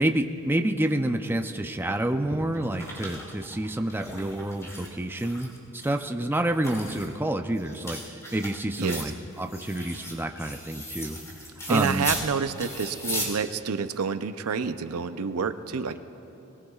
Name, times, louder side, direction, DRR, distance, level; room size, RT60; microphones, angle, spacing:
voice 1, 0.0-11.2 11.7-12.0, right 1 dB, 10° right, 5 dB, 0.5 m, -28 dB
sound 1, 2.3-4.9 5.2-6.0 6.4-12.3 12.6-13.3, left 1 dB, 15° left, 2.8 m, -37 dB
voice 2, 11.7-16.0, right 5 dB, 75° right, 10 dB, 0.6 m, -28 dB
22.0 x 20.5 x 2.4 m, 3.0 s
head